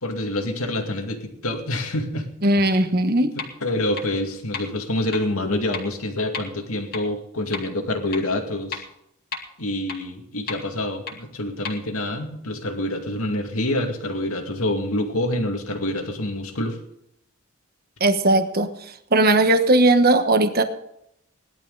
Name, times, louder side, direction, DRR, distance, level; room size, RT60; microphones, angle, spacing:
voice 1, 0.0-2.3 2.6-2.8 3.2-3.3 3.6-8.9 9.6-16.8, left 1 dB, 85° left, 3 dB, 2.4 m, -27 dB
voice 2, 2.4-3.3 18.0-18.7 19.1-20.6, right 2 dB, 45° right, 8 dB, 1.2 m, -18 dB
sound 1, 3.4-3.5 4.0-4.1 4.5-4.6 5.1-5.2 5.7-5.8 6.3-6.4 6.9-7.0 7.5-7.6 8.1-8.2 8.7-8.8 9.3-9.4 9.9-10.0 10.5-10.6 11.1-11.2 11.6-11.7, left 5 dB, 45° left, 2.4 m, -31 dB
18.5 x 12.0 x 4.0 m, 0.74 s
head